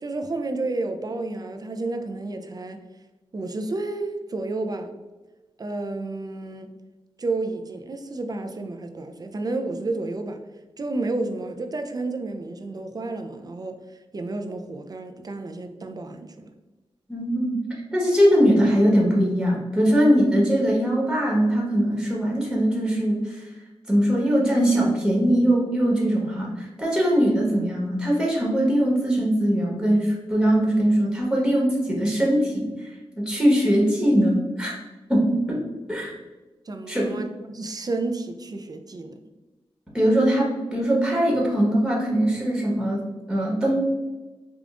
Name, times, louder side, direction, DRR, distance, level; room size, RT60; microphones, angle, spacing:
voice 1, 0.0-2.8 3.3-4.9 5.6-6.7 7.2-10.4 10.8-13.8 14.1-16.5 36.7-39.1, right 2 dB, 40° right, 6 dB, 0.4 m, -31 dB
voice 2, 17.1-17.7 17.9-23.5 23.9-32.9 33.2-34.7 35.1-35.6 35.9-36.1 36.9-37.1 39.9-43.8, equal, 5° right, -3 dB, 1.3 m, -21 dB
5.1 x 2.3 x 2.5 m, 1.2 s
cardioid pair, 65°, 10 cm